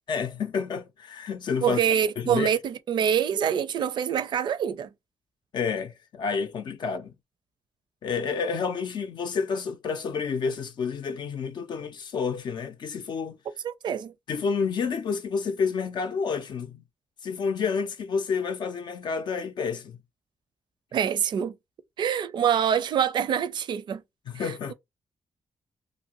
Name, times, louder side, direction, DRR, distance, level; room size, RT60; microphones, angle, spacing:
voice 1, 0.1-1.8 2.2-2.5 5.5-7.1 8.0-13.4 14.3-16.8 17.2-20.0 24.3-24.7, left 5 dB, 65° left, 0.5 m, -29 dB
voice 2, 1.6-4.9 13.6-14.1 20.9-21.6 22.0-24.0 24.3-24.7, right 8 dB, 65° right, 0.4 m, -25 dB
2.7 x 2.5 x 2.9 m
cardioid pair, 75°, 8 cm